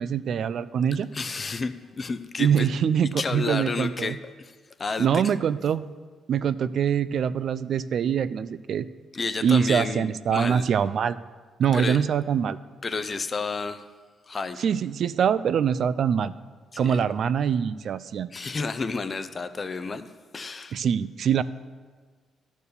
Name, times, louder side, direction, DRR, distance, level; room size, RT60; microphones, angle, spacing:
voice 1, 0.0-1.1 2.4-4.2 5.0-5.8 6.3-8.9 9.4-11.2 11.6-12.6 14.6-16.3 16.8-18.3 20.7-21.4, right 8 dB, 60° right, 15 dB, 0.3 m, -24 dB
voice 2, 1.1-2.7 3.2-5.2 9.1-10.6 11.7-12.0 12.8-13.8 14.3-14.6 16.9-17.0 18.3-20.1 20.3-20.8, left 4 dB, 35° left, 11 dB, 0.5 m, -31 dB
12.0 x 4.6 x 6.7 m, 1.5 s
cardioid pair, 90°, 0 cm